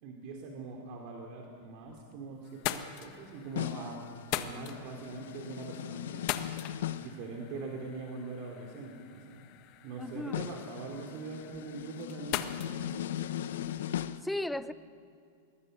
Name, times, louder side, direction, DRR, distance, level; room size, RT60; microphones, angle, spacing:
voice 1, 0.0-6.5 7.0-9.4 9.8-13.1, right 3 dB, 55° right, 1 dB, 3.0 m, -43 dB
sound 1, 1.6-2.1 2.4-14.1, left 12 dB, 50° left, 1.3 m, -42 dB
sound 2, 3.6-7.2 10.3-14.2, left 11 dB, 75° left, 0.8 m, -38 dB
voice 2, 10.0-10.4 14.2-14.7, left 1 dB, 5° left, 14 dB, 0.7 m, -35 dB
22.0 x 19.0 x 6.7 m, 2.4 s
hypercardioid pair, 120°, 0 cm